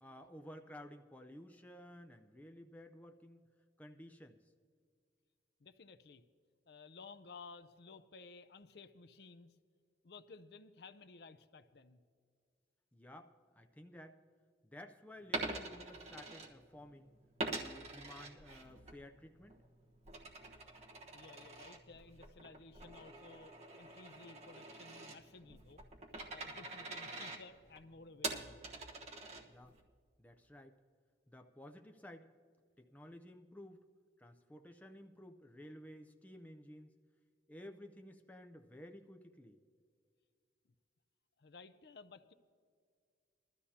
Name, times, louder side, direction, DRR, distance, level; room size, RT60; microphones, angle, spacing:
voice 1, 0.0-3.4 3.8-4.4 12.9-14.2 14.6-17.1 17.5-19.6 29.5-29.7 30.2-30.8 31.3-32.3 32.8-33.8 34.2-36.9 37.5-39.6, left 1 dB, 10° left, 4 dB, 0.5 m, -54 dB
voice 2, 5.6-6.2 6.7-9.5 10.0-12.0 21.1-25.8 26.3-28.6 41.4-42.3, left 4 dB, 60° left, 11 dB, 0.5 m, -56 dB
Coin (dropping), 15.2-16.9 17.4-19.0 19.4-29.8, right 2 dB, 35° right, 1.2 m, -45 dB
21.5 x 13.0 x 2.8 m, 2.1 s
head